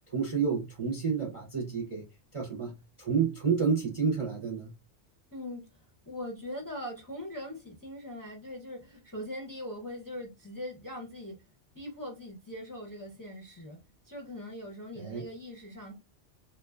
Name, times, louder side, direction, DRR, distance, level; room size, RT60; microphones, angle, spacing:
voice 1, 0.1-2.1 2.3-4.7 15.0-15.3, right 6 dB, 40° right, 0.5 m, -30 dB
voice 2, 5.3-11.4 11.7-13.8 14.0-15.9, left 1 dB, 25° left, 0.5 m, -41 dB
2.7 x 2.2 x 2.3 m
omnidirectional pair, 1.2 m